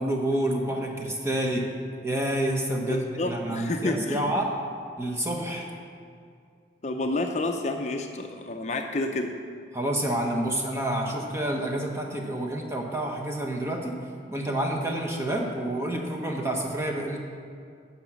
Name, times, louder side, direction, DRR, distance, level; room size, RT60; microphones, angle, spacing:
voice 1, 0.0-1.7 2.0-4.5 5.0-5.7 9.7-13.9 14.3-17.2, right 1 dB, 15° right, 1 dB, 1.0 m, -28 dB
voice 2, 2.9-4.2 6.8-9.3, left 2 dB, 40° left, 4 dB, 0.5 m, -29 dB
9.5 x 5.9 x 7.4 m, 2.3 s
head